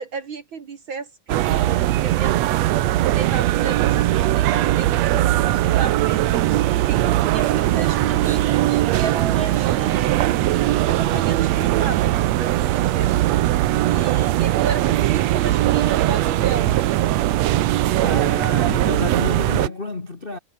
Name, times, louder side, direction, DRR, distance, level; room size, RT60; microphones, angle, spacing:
voice 1, 0.0-2.7 3.1-6.5 6.8-13.1 13.8-17.0, right 5 dB, 45° right, 1.8 m, -33 dB
sound 1, 1.3-19.7, right 14 dB, 75° right, 1.6 m, -20 dB
voice 2, 18.0-20.4, left 2 dB, 90° left, 0.5 m, -29 dB
omnidirectional pair, 4.1 m